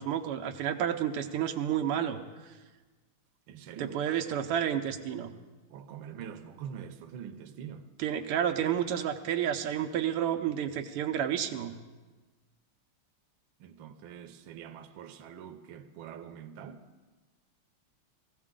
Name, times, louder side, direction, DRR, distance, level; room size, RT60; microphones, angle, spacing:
voice 1, 0.0-2.2 3.8-5.3 8.0-11.7, right 9 dB, 90° right, 1.7 m, -30 dB
voice 2, 3.5-4.2 5.7-7.9 13.6-16.8, right 8 dB, 75° right, 1.5 m, -44 dB
18.5 x 15.5 x 3.7 m
omnidirectional pair, 2.4 m